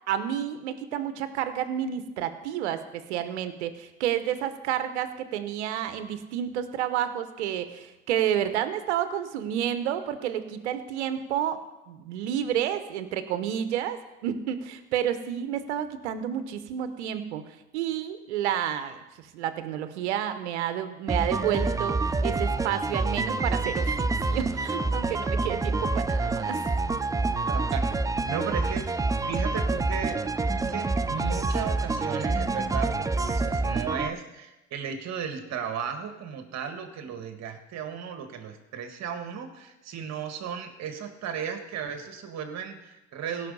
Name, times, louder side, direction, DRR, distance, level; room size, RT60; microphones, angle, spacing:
voice 1, 0.1-19.0 19.3-26.8, right 10 dB, 85° right, 10 dB, 1.0 m, -30 dB
sound 1, 21.1-34.1, right 3 dB, 10° right, 0.4 m, -27 dB
voice 2, 27.5-27.9 28.3-30.2 30.7-43.5, right 7 dB, 50° right, 6 dB, 1.7 m, -35 dB
17.0 x 5.8 x 5.4 m, 1.0 s
hypercardioid pair, 80°, 33 cm